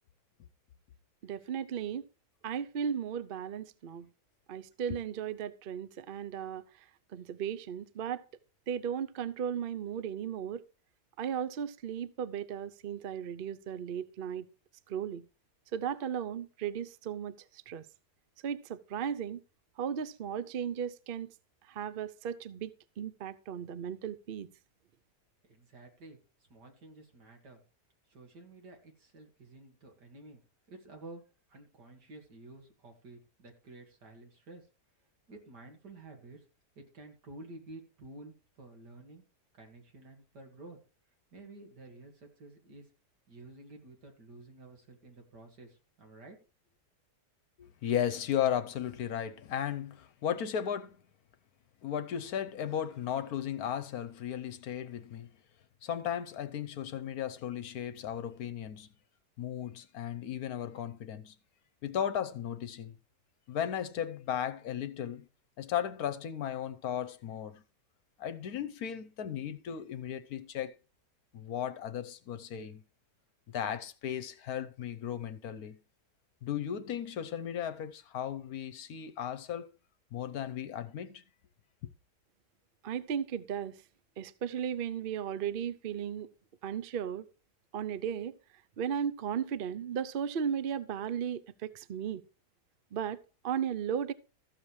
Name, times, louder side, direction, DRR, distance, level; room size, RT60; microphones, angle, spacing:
voice 1, 1.2-2.1 2.4-4.1 4.5-6.6 7.1-8.2 8.7-10.6 11.2-14.5 14.9-15.2 15.7-17.4 17.7-17.9 18.4-19.4 19.8-21.3 21.7-24.5 82.8-83.8 84.2-86.3 86.6-87.3 87.7-88.4 88.8-92.2 92.9-93.2 93.4-94.1, right 8 dB, 50° right, 0.6 m, -35 dB
voice 2, 25.4-26.2 26.5-27.6 28.1-30.4 30.7-31.2 31.5-34.7 35.3-36.4 36.8-39.2 39.5-40.8 41.3-42.9 43.3-46.4, right 2 dB, 90° right, 2.9 m, -51 dB
voice 3, 47.6-51.0 51.8-55.3 55.8-58.9 59.4-61.4 61.8-63.0 63.5-65.3 65.6-67.6 68.2-70.8 71.3-72.8 73.5-75.8 76.4-79.8 80.1-81.2, left 9 dB, 70° left, 1.2 m, -35 dB
14.0 x 7.1 x 4.7 m
omnidirectional pair, 1.7 m